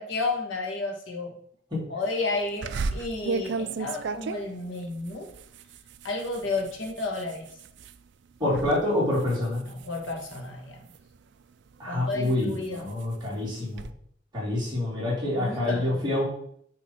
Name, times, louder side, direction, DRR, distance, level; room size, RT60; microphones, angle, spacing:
voice 1, 0.0-1.4 1.9-5.3 6.0-7.5 9.6-10.8 11.9-12.9 15.3-16.0, left 3 dB, 85° left, 1 dB, 1.5 m, -32 dB
sound 1, 2.6-8.0 8.4-8.8 9.1-11.2 11.7-13.9, right 4 dB, 65° right, 0.4 m, -35 dB
voice 2, 8.4-9.6 11.8-13.9 14.3-16.2, left 1 dB, 25° right, -6 dB, 2.8 m, -27 dB
9.1 x 3.1 x 4.3 m, 0.67 s
head